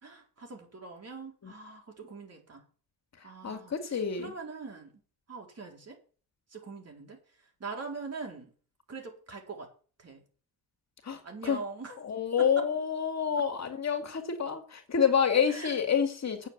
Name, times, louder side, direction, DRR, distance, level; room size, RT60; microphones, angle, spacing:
voice 1, 0.0-2.6 3.2-4.9 5.3-6.0 6.5-7.2 7.6-8.5 8.9-9.7 10.0-10.2 11.2-12.0 12.4-12.7 15.5-15.8, right 4 dB, 35° right, 2 dB, 4.1 m, -42 dB
voice 2, 3.4-4.3 11.1-11.6 12.0-16.5, left 7 dB, 40° left, 5 dB, 2.3 m, -28 dB
9.0 x 7.4 x 9.1 m, 0.39 s
cardioid pair, 115°, 41 cm